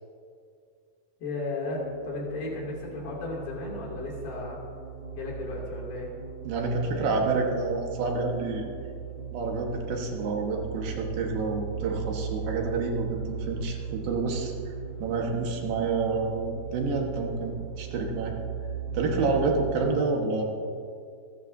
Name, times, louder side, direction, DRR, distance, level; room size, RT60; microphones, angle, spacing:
voice 1, 1.2-4.6 5.1-6.1, left 2 dB, 90° left, -3 dB, 4.7 m, -34 dB
sound 1, 1.7-19.7, right 7 dB, 55° right, 2.3 m, -38 dB
voice 2, 6.4-8.6 9.3-14.7 15.0-18.3 18.9-20.4, right 3 dB, 80° right, 1 dB, 3.3 m, -28 dB
27.5 x 11.0 x 2.7 m, 2.3 s
omnidirectional pair, 4.1 m